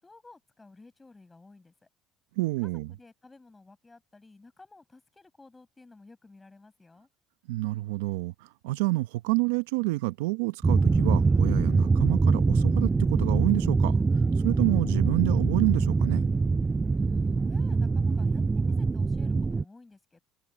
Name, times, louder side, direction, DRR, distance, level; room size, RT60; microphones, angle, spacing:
voice 1, 0.0-1.9 2.6-7.1 17.0-20.2, left 3 dB, 15° left, 5.7 m, -54 dB
voice 2, 2.4-2.9 7.5-14.0 14.4-16.3, right 21 dB, 80° right, 1.0 m, -28 dB
sound 1, 10.6-19.6, right 4 dB, 20° right, 0.4 m, -24 dB
hypercardioid pair, 75°, 0 cm